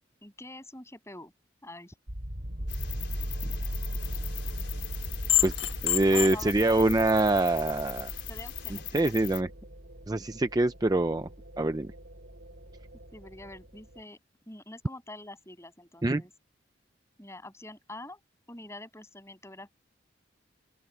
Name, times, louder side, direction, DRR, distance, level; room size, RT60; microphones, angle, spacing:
voice 1, 0.2-1.3 1.6-2.0 6.1-6.9 8.3-9.3 13.1-14.2 14.5-16.3 17.2-18.2 18.5-19.7, left 1 dB, 15° left, 7.8 m, -45 dB
sound 1, 2.1-14.0, equal, 70° right, 5.8 m, -39 dB
sound 2, 2.7-9.4, left 11 dB, 60° left, 4.7 m, -41 dB
sound 3, 4.0-8.8, left 10 dB, 85° left, 1.3 m, -33 dB
voice 2, 5.8-8.1 8.9-9.5 10.1-11.3 11.6-11.9 16.0-16.2, right 2 dB, 20° right, 0.4 m, -25 dB
open air
head